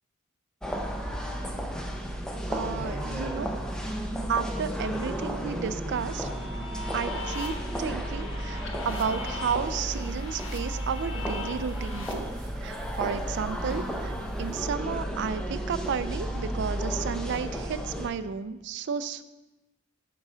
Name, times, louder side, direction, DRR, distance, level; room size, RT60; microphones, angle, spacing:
sound 1, 0.6-18.1, equal, 5° left, 0.6 m, -33 dB
voice 1, 2.5-3.5 4.3-6.3 6.9-12.3 12.6-19.2, right 6 dB, 55° right, 13 dB, 0.4 m, -32 dB
sound 2, 5.9-12.1, left 2 dB, 60° left, 1.0 m, -40 dB
sound 3, 8.9-14.6, right 1 dB, 20° right, 1.8 m, -55 dB
9.4 x 3.8 x 6.1 m, 1.1 s
head